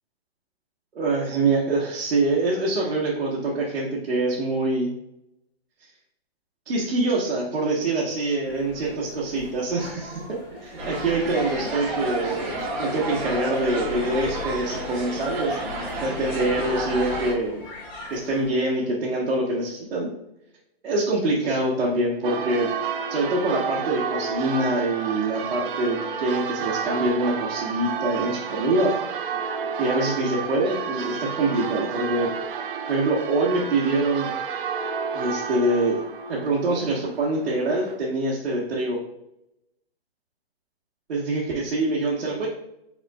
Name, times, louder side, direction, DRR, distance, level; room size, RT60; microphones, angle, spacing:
voice 1, 0.9-4.9 6.7-15.6 16.0-17.6 18.1-20.1 20.8-22.7 23.1-28.9 29.8-32.3 32.9-34.3 35.1-36.0 36.3-39.0 41.1-42.5, right 2 dB, 85° right, -5 dB, 1.4 m, -25 dB
sound 1, 8.4-18.5, left 1 dB, 15° left, 0.9 m, -44 dB
sound 2, 10.8-17.3, right 1 dB, 10° right, 0.6 m, -30 dB
Church bell, 22.2-38.0, right 6 dB, 55° right, 0.6 m, -31 dB
5.7 x 3.6 x 2.3 m, 0.83 s
hypercardioid pair, 165°, 32 cm